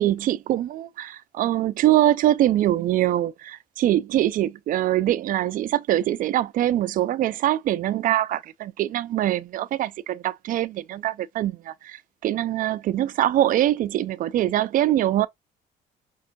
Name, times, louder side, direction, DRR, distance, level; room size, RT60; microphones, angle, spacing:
voice 1, 0.0-15.3, right 13 dB, 55° right, 0.4 m, -23 dB
5.2 x 2.4 x 2.6 m
cardioid pair, 110°, 17 cm